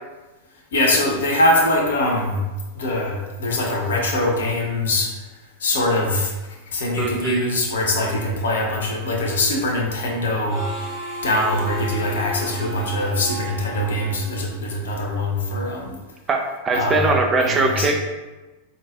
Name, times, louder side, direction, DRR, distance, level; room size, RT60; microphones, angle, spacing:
voice 1, 0.7-2.4 2.7-5.1 5.6-6.3 6.7-10.6 11.2-16.0 16.7-17.1 17.4-17.9, left 1 dB, 65° left, 0 dB, 0.6 m, -22 dB
voice 2, 7.0-7.4 16.3-18.0, right 3 dB, 20° right, 2 dB, 0.4 m, -21 dB
Harmonica, 10.5-15.0, equal, 20° left, 1.2 m, -34 dB
3.9 x 2.4 x 2.3 m, 1.2 s
figure-of-eight pair, 90°, 0 cm